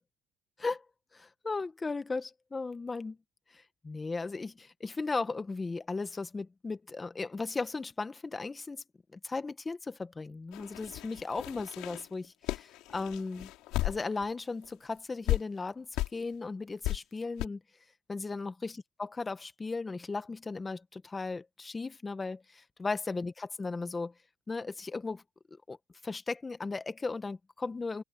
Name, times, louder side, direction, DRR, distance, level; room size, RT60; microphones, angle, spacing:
voice 1, 1.1-3.2 3.8-8.8 9.1-13.5 13.8-17.6 18.1-24.1 24.5-25.2 25.7-25.8 26.0-28.0, left 3 dB, 25° left, 1.3 m, -36 dB
sound 1, 10.5-14.3 14.6-14.7 15.3-15.4 16.0-16.2 16.8-17.0 17.4-17.5, left 17 dB, 80° left, 4.6 m, -34 dB
cardioid pair, 95°, 0 cm